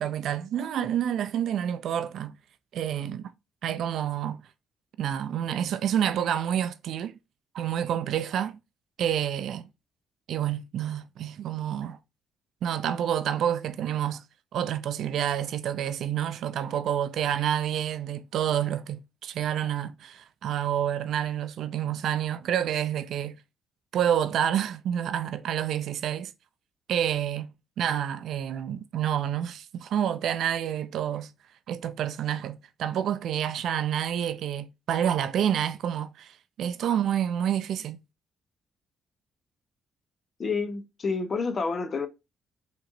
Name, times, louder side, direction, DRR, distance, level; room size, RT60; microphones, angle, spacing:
voice 1, 0.0-2.3 2.7-3.3 3.6-4.4 5.0-7.1 7.5-8.6 9.0-9.7 10.3-12.0 12.6-14.2 14.5-23.4 23.9-26.3 26.9-31.3 31.7-38.0, right 10 dB, 75° right, 0.4 m, -28 dB
voice 2, 40.4-42.1, left 4 dB, 40° left, 0.8 m, -29 dB
4.9 x 3.1 x 2.6 m
cardioid pair, 90°, 0 cm